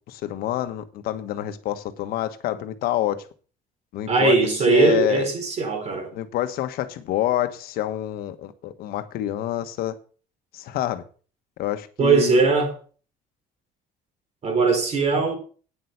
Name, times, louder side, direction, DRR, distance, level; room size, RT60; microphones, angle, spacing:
voice 1, 0.1-3.3 3.9-4.4 4.7-5.3 6.1-10.0 10.5-11.0 11.6-12.5, left 13 dB, 80° left, 1.3 m, -27 dB
voice 2, 4.1-6.1 12.0-12.7 14.4-15.4, right 4 dB, 45° right, 4.2 m, -20 dB
9.5 x 7.9 x 6.9 m
cardioid pair, 115°, 15 cm